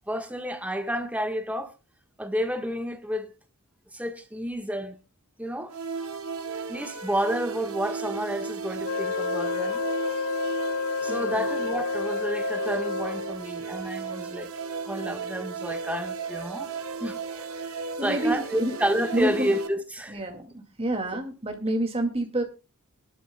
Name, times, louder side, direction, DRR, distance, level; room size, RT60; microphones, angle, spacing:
voice 1, 0.1-1.7 2.2-3.3 3.9-5.0 5.4-5.8 6.7-9.8 11.0-14.5 14.8-16.7 17.0-20.3, equal, 5° right, 1.3 m, -30 dB
sound 1, 5.7-19.7, right 5 dB, 75° right, 1.7 m, -35 dB
Wind instrument woodwind instrument, 8.8-13.5, left 6 dB, 50° left, 1.0 m, -30 dB
voice 2, 18.0-18.3 18.6-18.7 19.1-19.5 20.1-22.4, right 1 dB, 25° right, 2.2 m, -28 dB
22.0 x 12.0 x 2.2 m
head